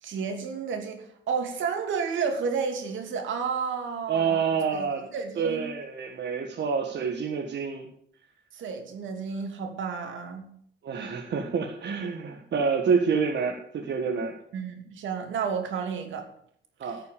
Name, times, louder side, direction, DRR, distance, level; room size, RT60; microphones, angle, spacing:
voice 1, 0.0-4.4 4.7-5.7 8.5-10.5 14.5-16.3, right 6 dB, 75° right, 4 dB, 2.9 m, -31 dB
voice 2, 4.1-5.1 5.4-7.9 10.8-14.3 16.8-17.0, right 6 dB, 60° right, 2 dB, 1.7 m, -27 dB
12.0 x 6.7 x 8.4 m, 0.67 s
cardioid pair, 90°, 20 cm